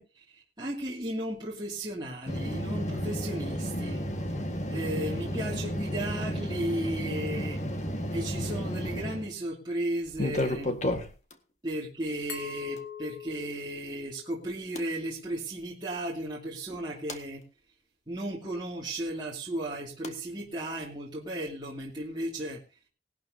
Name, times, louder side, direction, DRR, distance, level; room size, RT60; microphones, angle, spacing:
voice 1, 0.0-4.0 4.7-7.6 8.1-10.7 11.6-17.4 18.1-22.6, right 1 dB, 25° right, -4 dB, 2.5 m, -35 dB
sound 1, 2.3-9.3 10.1-11.3 12.8-12.9 14.7-14.8 16.7-17.2 20.0-20.1, equal, 40° left, 1.7 m, -32 dB
Glass, 12.3-15.1, left 7 dB, 85° left, 3.4 m, -43 dB
19.5 x 12.0 x 2.8 m, 0.32 s
head